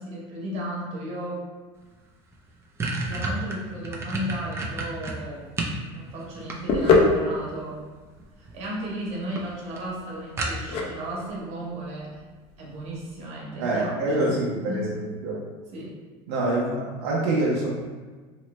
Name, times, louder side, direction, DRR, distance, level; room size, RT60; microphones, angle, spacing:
voice 1, 0.0-1.4 3.1-5.4 5.9-7.8 8.4-12.1 12.6-14.4 14.7-14.9 15.7-16.0, right 1 dB, 50° right, -4 dB, 1.0 m, -34 dB
sound 1, 1.9-2.0 2.3-5.8 6.2-7.1 8.2-8.6 8.9-9.0 9.4-9.5 9.8-9.9 10.4-10.9, right 2 dB, 20° right, 0.4 m, -30 dB
sound 2, 5.4-13.3, left 3 dB, 45° left, 0.5 m, -27 dB
voice 2, 13.6-15.3 16.3-17.7, right 2 dB, 85° right, -5 dB, 0.6 m, -25 dB
3.0 x 2.1 x 3.0 m, 1.4 s
supercardioid pair, 120°, 14 cm